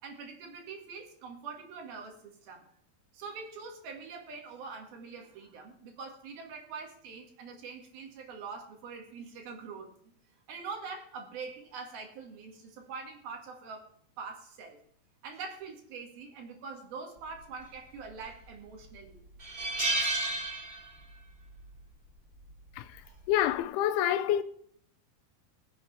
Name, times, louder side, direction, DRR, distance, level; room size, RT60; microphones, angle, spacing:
voice 1, 0.0-2.6 3.1-9.9 10.5-13.9 14.2-14.8 15.2-19.2 23.0-23.2, right 5 dB, 65° right, 3.8 m, -44 dB
sound 1, 18.0-18.5 18.9-19.0 19.4-21.2 21.5-21.7 23.0-23.3, right 2 dB, 15° right, 1.7 m, -32 dB
voice 2, 23.3-24.4, left 11 dB, 80° left, 2.5 m, -27 dB
21.5 x 8.1 x 3.4 m
omnidirectional pair, 4.7 m